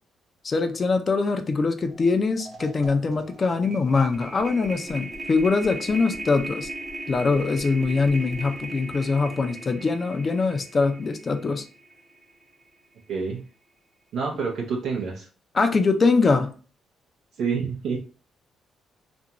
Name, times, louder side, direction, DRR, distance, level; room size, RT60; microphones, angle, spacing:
voice 1, 0.4-6.7 7.1-11.7 15.5-16.5, left 4 dB, 35° left, 7 dB, 0.4 m, -23 dB
sound 1, 1.9-2.1 2.4-12.6, right 2 dB, 40° right, 0.8 m, -38 dB
voice 2, 13.1-13.4 14.1-15.3 17.4-18.0, right 5 dB, 80° right, -2 dB, 0.6 m, -27 dB
2.5 x 2.2 x 2.8 m, 0.38 s
cardioid pair, 85°, 0 cm